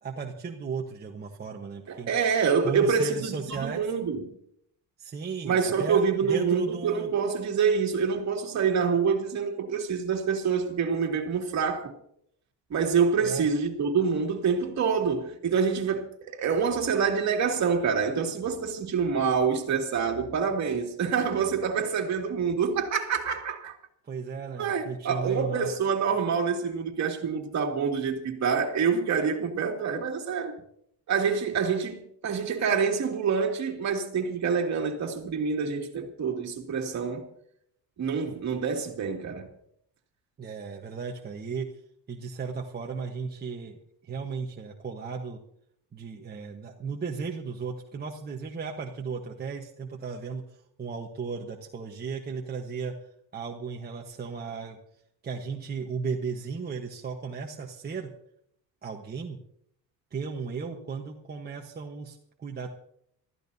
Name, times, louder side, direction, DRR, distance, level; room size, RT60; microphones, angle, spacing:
voice 1, 0.0-2.1 2.6-3.9 5.0-7.1 13.2-13.5 24.0-25.7 40.4-41.7 42.1-45.4 45.9-52.9 53.3-54.8 55.2-58.1 58.8-59.4 60.1-62.7, right 5 dB, 25° right, 1.2 m, -35 dB
voice 2, 1.9-3.2 3.5-4.2 5.4-11.9 12.7-23.8 24.6-30.5 31.1-37.2 38.0-39.4, right 6 dB, 45° right, 2.6 m, -26 dB
26.0 x 14.0 x 2.8 m
cardioid pair, 135°, 38 cm